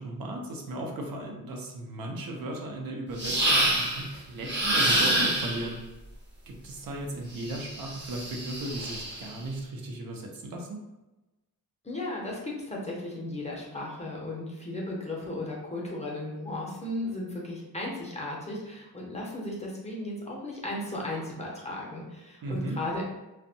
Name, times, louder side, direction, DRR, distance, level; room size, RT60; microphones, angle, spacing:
voice 1, 0.0-5.8 6.5-10.8 22.4-22.8, right 1 dB, 75° right, 0 dB, 0.6 m, -36 dB
sound 1, 3.2-4.1 4.4-5.7 7.4-9.3, right 1 dB, 30° right, 0.6 m, -27 dB
voice 2, 11.8-23.0, left 1 dB, 20° left, -3 dB, 0.5 m, -35 dB
2.6 x 2.1 x 2.6 m, 1.0 s
wide cardioid pair, 135°, 35 cm